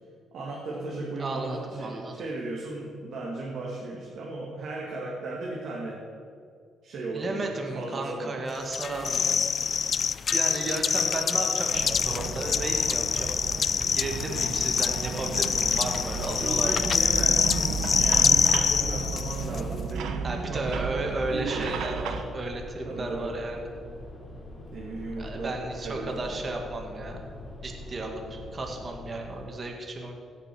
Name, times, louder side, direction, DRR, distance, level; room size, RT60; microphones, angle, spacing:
voice 1, 0.3-6.0 6.8-8.4 16.4-20.8 21.3-21.8 22.9-23.3 24.7-25.6 25.8-26.4, right 2 dB, 65° right, -3 dB, 2.2 m, -35 dB
voice 2, 1.2-2.1 7.1-9.4 10.3-13.3 13.9-16.8 20.2-23.6 25.2-27.3 27.6-30.1, right 2 dB, 35° right, 2 dB, 1.8 m, -34 dB
sound 1, 8.7-19.6, left 7 dB, 50° left, 0.3 m, -26 dB
sound 2, 11.7-22.2, right 6 dB, 80° right, 1.0 m, -34 dB
sound 3, 15.7-29.4, left 1 dB, 30° left, 3.1 m, -43 dB
16.5 x 6.8 x 6.2 m, 2.4 s
cardioid pair, 90°, 0 cm